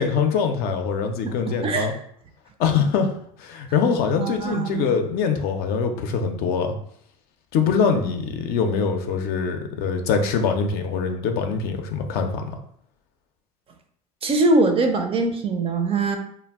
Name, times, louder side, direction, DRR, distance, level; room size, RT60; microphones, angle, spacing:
voice 1, 0.0-1.9 2.6-3.1 3.4-6.8 7.5-12.6, left 5 dB, 55° left, 5 dB, 0.5 m, -23 dB
voice 2, 1.2-1.9 4.2-4.9 14.2-16.2, right 2 dB, 30° right, 6 dB, 0.4 m, -22 dB
2.3 x 2.1 x 3.4 m, 0.66 s
hypercardioid pair, 90°, 19 cm